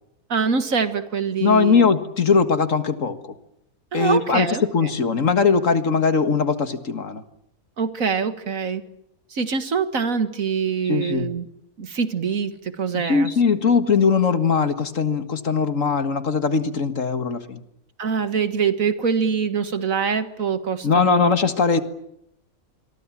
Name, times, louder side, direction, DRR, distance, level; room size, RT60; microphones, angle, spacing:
voice 1, 0.3-1.9 3.9-4.6 7.8-8.8 9.3-11.5 11.8-13.3 18.0-21.3, right 6 dB, 65° right, 11 dB, 2.1 m, -24 dB
voice 2, 1.4-3.4 3.9-7.2 10.9-11.3 12.9-17.6 20.8-21.8, left 5 dB, 60° left, 11 dB, 2.1 m, -20 dB
27.0 x 22.5 x 7.4 m, 0.79 s
omnidirectional pair, 1.5 m